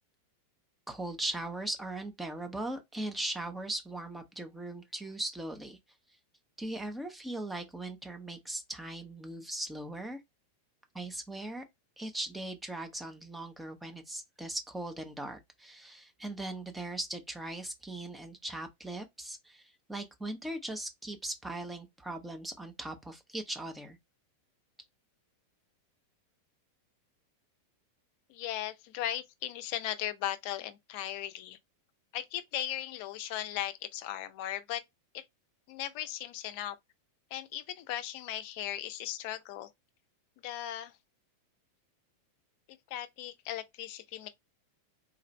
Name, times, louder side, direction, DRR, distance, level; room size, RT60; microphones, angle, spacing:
voice 1, 0.9-5.8 6.6-10.2 10.9-11.6 12.0-24.0, right 1 dB, 5° right, 0.7 m, -39 dB
voice 2, 28.3-31.6 32.1-34.8 35.1-35.2 35.7-36.8 37.3-39.7 40.4-41.0 42.7-44.3, left 12 dB, 45° left, 0.5 m, -37 dB
3.8 x 2.4 x 3.1 m
figure-of-eight pair, 90°, 0 cm